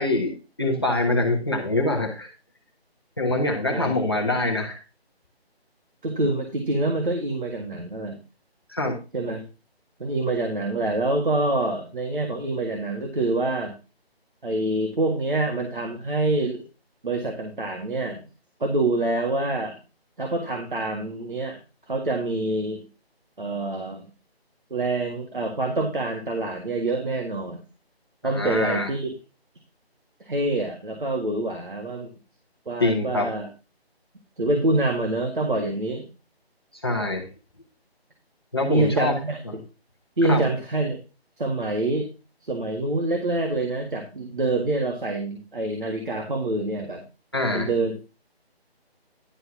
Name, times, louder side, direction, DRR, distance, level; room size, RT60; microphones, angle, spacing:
voice 1, 0.0-2.3 3.2-4.8 8.7-9.0 28.2-28.9 32.8-33.3 36.8-37.3 38.5-39.1 40.2-40.4 47.3-47.7, left 2 dB, 25° left, 0 dB, 1.1 m, -24 dB
voice 2, 3.7-4.3 6.0-8.2 9.1-9.4 10.0-13.7 14.4-16.6 17.0-18.2 18.6-19.8 20.2-21.6 21.9-22.8 23.4-24.0 24.7-27.6 28.2-29.1 30.2-32.1 32.7-33.5 34.4-36.1 38.7-39.6 40.2-41.0 41.4-42.1 42.4-47.0 47.5-47.9, right 2 dB, 55° right, 2 dB, 1.9 m, -26 dB
11.0 x 4.4 x 5.8 m, 0.30 s
figure-of-eight pair, 180°, 32 cm